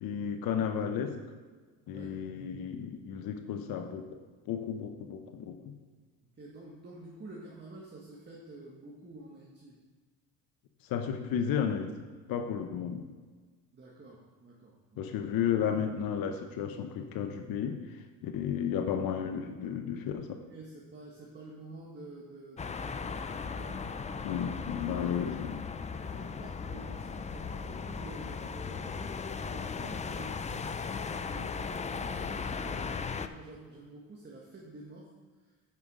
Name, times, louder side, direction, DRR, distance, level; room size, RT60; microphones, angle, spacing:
voice 1, 0.0-1.2 1.9-4.2 4.5-5.6 10.8-11.9 12.3-13.1 15.0-20.4 24.2-25.5, left 8 dB, 65° left, 6 dB, 0.9 m, -33 dB
voice 2, 6.4-9.8 13.7-15.0 20.5-24.0 24.9-29.0 29.5-35.1 35.4-35.5, right 2 dB, 30° right, -3 dB, 1.5 m, -49 dB
sound 1, 22.6-33.3, left 5 dB, 20° left, 0.4 m, -37 dB
9.5 x 5.5 x 4.9 m, 1.4 s
supercardioid pair, 90°, 37 cm